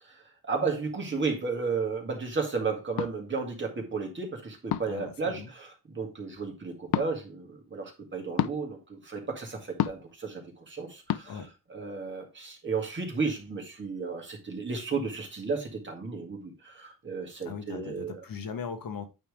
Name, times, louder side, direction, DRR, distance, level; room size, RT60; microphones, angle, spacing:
voice 1, 0.4-11.4 11.7-18.2, right 4 dB, 30° right, 2.0 m, -33 dB
sound 1, 3.0-3.1 4.7-5.0 6.9-7.1 8.4-8.6 9.8-10.1 11.1-11.2, left 12 dB, 85° left, 0.5 m, -28 dB
voice 2, 4.9-5.5 11.3-11.5 17.4-19.0, left 6 dB, 65° left, 1.2 m, -39 dB
8.9 x 3.4 x 4.9 m
wide cardioid pair, 145°, 37 cm